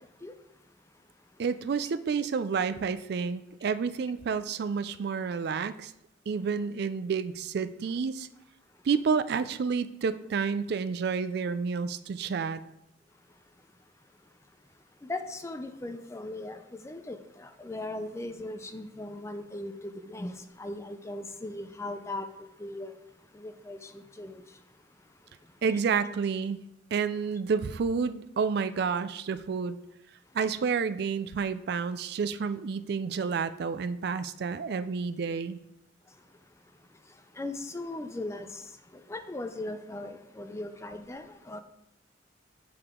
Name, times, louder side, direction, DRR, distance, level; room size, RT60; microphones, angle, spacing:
voice 1, 1.4-5.9 6.3-8.3 8.9-12.6 25.6-26.6 26.9-29.8 30.3-35.6, right 5 dB, 55° right, 0.3 m, -30 dB
voice 2, 15.1-16.6 16.8-17.2 17.6-20.3 20.6-22.3 22.6-22.9 23.4-23.8 24.2-24.4 37.4-38.5 39.1-41.6, left 2 dB, 15° left, 0.4 m, -38 dB
8.7 x 4.8 x 3.6 m
head